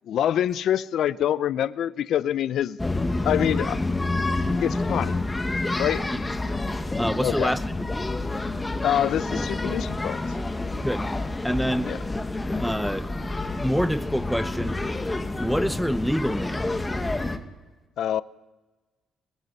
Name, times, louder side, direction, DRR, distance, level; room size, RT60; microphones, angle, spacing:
voice 1, 0.1-2.8 3.2-3.8 4.5-5.2 5.8-6.1 7.2-7.5 8.8-10.2 11.8-12.0 18.0-18.2, left 10 dB, 75° left, 0.6 m, -25 dB
sound 1, 2.8-17.4, left 2 dB, 15° left, 1.8 m, -28 dB
voice 2, 7.0-7.7 10.8-11.0 11.4-11.9 12.6-13.1 13.6-14.8 15.4-16.7, equal, ahead, 0.7 m, -26 dB
23.0 x 20.5 x 5.6 m
cardioid pair, 90°, 0 cm